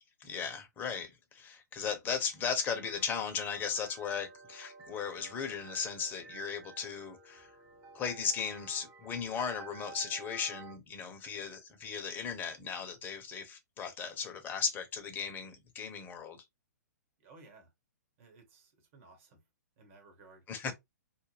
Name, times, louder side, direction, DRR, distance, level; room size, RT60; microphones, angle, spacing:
voice 1, 0.2-7.5 7.9-16.4 20.5-20.7, left 6 dB, 20° left, 0.6 m, -36 dB
sound 1, 2.6-10.8, right 4 dB, 25° right, 0.7 m, -52 dB
voice 2, 17.2-17.7 18.2-19.4 19.8-20.4, right 3 dB, 50° right, 1.2 m, -57 dB
2.4 x 2.0 x 3.1 m
hypercardioid pair, 125°, 9 cm